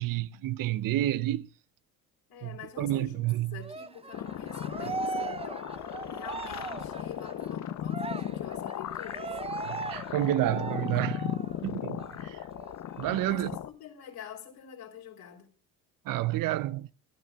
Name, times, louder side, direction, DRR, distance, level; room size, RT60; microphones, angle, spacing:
voice 1, 0.0-1.5 2.4-3.6 9.7-11.4 11.6-12.4 13.0-13.5 16.1-16.9, right 14 dB, 60° right, 0.7 m, -30 dB
voice 2, 2.3-9.4 13.3-15.5, left 8 dB, 65° left, 3.7 m, -47 dB
Cheering, 3.6-11.6 12.0-12.1 12.5-13.5, right 4 dB, 15° right, 0.7 m, -39 dB
sound 1, 4.1-13.7, left 10 dB, 45° left, 0.8 m, -37 dB
27.5 x 11.0 x 2.4 m
hypercardioid pair, 65°, 38 cm